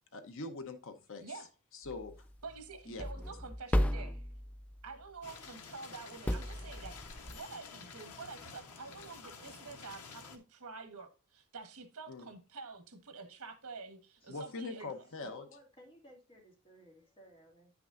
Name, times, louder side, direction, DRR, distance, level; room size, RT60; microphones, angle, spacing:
voice 1, 0.1-1.2 1.7-2.3 2.9-3.0 12.1-12.2 14.3-15.4, left 3 dB, 60° left, 0.9 m, -43 dB
sound 1, 1.9-5.1 6.3-7.4, equal, 5° left, 0.3 m, -35 dB
voice 2, 2.4-4.2 4.8-7.0 7.3-14.9, right 4 dB, 80° right, 1.3 m, -48 dB
sound 2, 5.2-10.4, left 5 dB, 90° left, 1.2 m, -50 dB
voice 3, 14.2-17.7, equal, 25° left, 2.5 m, -59 dB
9.7 x 6.0 x 2.5 m
head